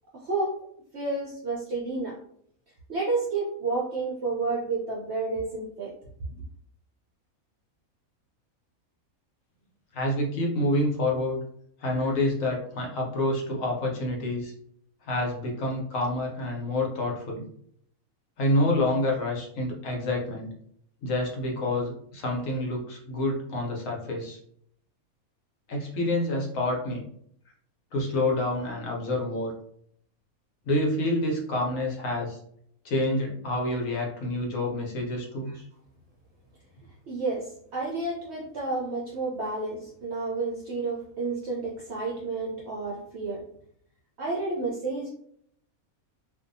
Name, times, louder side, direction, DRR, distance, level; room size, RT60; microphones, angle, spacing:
voice 1, 0.1-0.5 0.9-2.2 2.9-5.9 35.5-35.6 37.1-43.4 44.2-45.1, right 3 dB, 65° right, -4 dB, 0.7 m, -30 dB
voice 2, 9.9-11.4 11.8-14.5 15.1-17.4 18.4-20.5 21.0-24.4 25.7-27.1 27.9-29.5 30.7-32.4 32.8-35.5, left 1 dB, 70° left, -1 dB, 1.0 m, -28 dB
2.6 x 2.3 x 2.5 m, 0.67 s
omnidirectional pair, 1.5 m